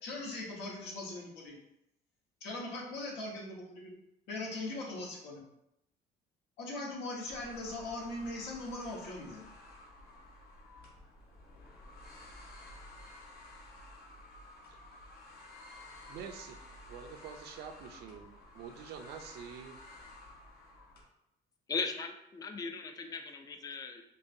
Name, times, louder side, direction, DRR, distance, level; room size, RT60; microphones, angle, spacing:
voice 1, 0.0-1.5 2.4-4.0 4.3-5.4 6.6-9.4, left 2 dB, 85° left, 1.2 m, -40 dB
sound 1, 7.2-21.0, left 2 dB, 70° left, 0.9 m, -53 dB
voice 2, 16.1-16.6 16.9-18.3 18.5-19.8, right 7 dB, 75° right, 0.5 m, -46 dB
voice 3, 21.7-24.0, left 4 dB, 20° left, 0.4 m, -38 dB
5.3 x 2.3 x 2.6 m
cardioid pair, 110°, 17 cm